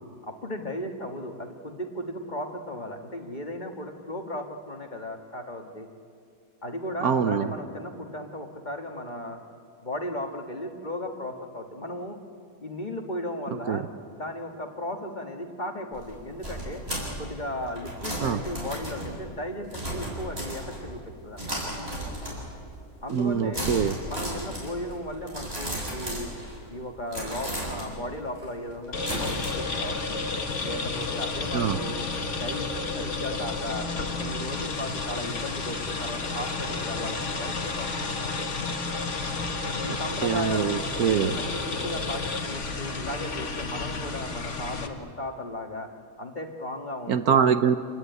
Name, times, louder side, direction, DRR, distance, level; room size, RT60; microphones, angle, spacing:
voice 1, 0.2-5.9 6.6-9.4 9.8-12.2 12.6-13.9 14.1-16.8 17.2-21.7 23.0-23.7 24.1-26.3 26.7-30.2 30.6-32.1 32.4-33.9 34.2-38.3 39.8-40.8 41.2-45.9 46.2-47.4, left 1 dB, 30° left, 4 dB, 1.7 m, -36 dB
voice 2, 7.0-7.5 13.7-13.8 18.2-18.4 23.1-24.0 31.5-31.8 39.9-40.0 40.2-41.4 47.1-47.8, right 7 dB, 65° right, 10 dB, 1.3 m, -24 dB
sound 1, 15.9-21.0 21.4-22.7 23.0-23.3 23.5-26.7 27.1-29.5, right 1 dB, 35° right, 7.5 m, -35 dB
sound 2, 28.9-44.9, left 3 dB, 45° left, 1.9 m, -31 dB
27.5 x 19.5 x 9.3 m, 2.4 s
omnidirectional pair, 1.8 m